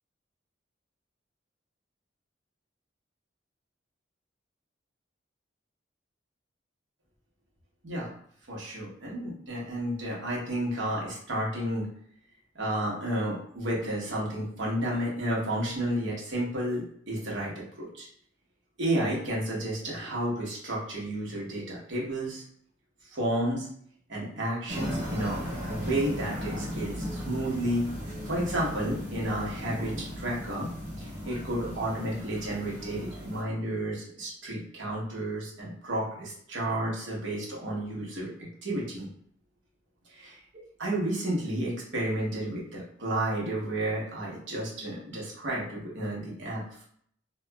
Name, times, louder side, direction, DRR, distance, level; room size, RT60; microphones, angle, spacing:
voice 1, 8.5-11.9 12.5-18.1 18.8-22.4 23.1-23.7 24.1-27.9 28.3-30.7 31.0-39.1 40.1-40.4 40.8-46.8, right 1 dB, 75° right, -4 dB, 1.0 m, -31 dB
sound 1, 24.7-33.4, left 1 dB, 20° right, 1.1 m, -36 dB
2.9 x 2.3 x 2.2 m, 0.62 s
head